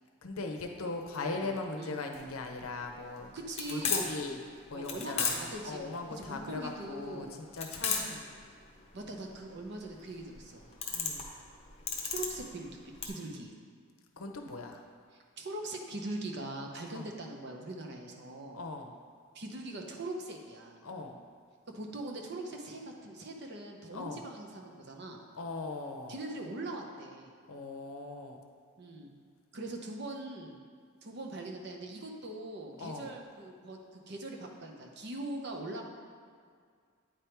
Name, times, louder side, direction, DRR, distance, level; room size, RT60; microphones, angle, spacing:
voice 1, 0.2-3.3 3.7-4.4 4.7-8.3 10.9-11.3 14.2-14.8 16.9-17.1 18.5-19.0 20.8-21.2 23.9-24.2 25.4-26.2 27.5-28.4 32.8-33.1, left 3 dB, 80° left, 3 dB, 0.7 m, -39 dB
sound 1, 2.1-13.1, left 6 dB, 30° left, 0.7 m, -36 dB
voice 2, 3.3-4.1 4.7-7.4 7.9-8.0 8.9-10.7 12.0-13.5 15.4-18.6 19.3-20.8 21.7-25.2 26.1-27.3 28.8-29.1 29.5-30.6 31.0-35.8, right 2 dB, 50° right, 2 dB, 0.7 m, -41 dB
8.9 x 3.5 x 4.4 m, 2.1 s
head